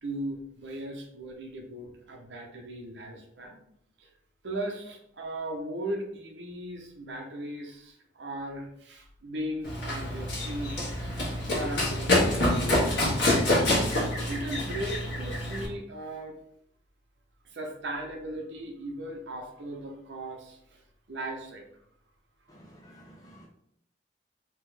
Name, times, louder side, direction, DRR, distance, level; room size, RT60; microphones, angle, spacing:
voice 1, 0.0-3.6 4.0-4.1 4.4-16.4 17.4-20.8 21.1-21.6, right 1 dB, 90° right, 1 dB, 0.8 m, -38 dB
Run, 9.6-15.7, left 1 dB, 85° left, 1.4 m, -26 dB
voice 2, 22.5-23.5, equal, 20° left, -3 dB, 0.8 m, -52 dB
3.6 x 3.0 x 3.3 m, 0.70 s
head